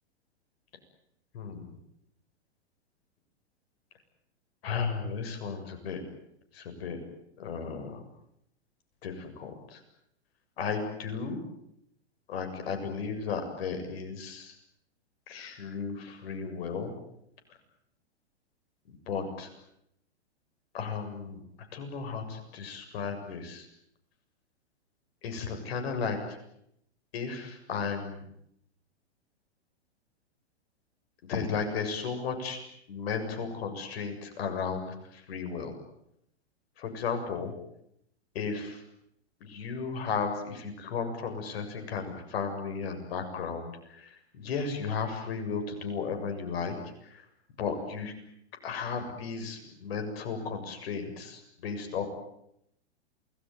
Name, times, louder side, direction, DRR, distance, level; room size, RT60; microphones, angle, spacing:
voice 1, 1.3-1.7 4.6-6.0 6.5-7.0 7.4-8.0 9.0-9.8 10.6-11.4 12.3-14.5 15.3-16.9 19.1-19.5 20.7-21.4 21.7-23.7 25.2-26.2 27.1-28.2 31.3-32.6 32.9-34.9 35.3-35.7 36.8-37.5 38.4-38.8 39.4-44.1 44.4-46.8 47.6-48.1 48.6-52.0, left 5 dB, 60° left, 5 dB, 7.2 m, -34 dB
28.5 x 20.0 x 9.4 m, 0.76 s
hypercardioid pair, 115°, 34 cm